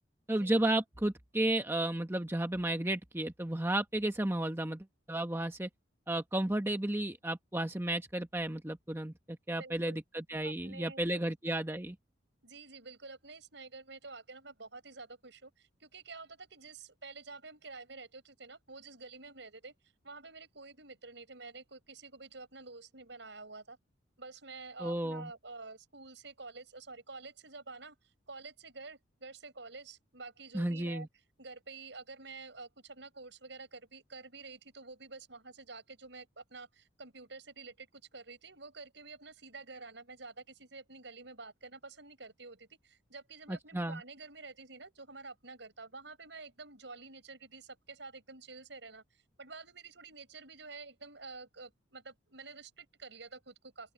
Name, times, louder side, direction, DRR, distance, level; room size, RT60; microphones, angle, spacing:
voice 1, 0.3-5.7 6.1-12.0 24.8-25.3 30.5-31.1 43.5-44.0, right 1 dB, 10° right, 1.0 m, -33 dB
voice 2, 9.5-10.0 10.4-11.2 12.4-19.7 20.0-23.8 24.2-28.0 28.3-31.1 31.4-49.0 49.4-53.9, right 3 dB, 70° right, 6.1 m, -49 dB
open air
head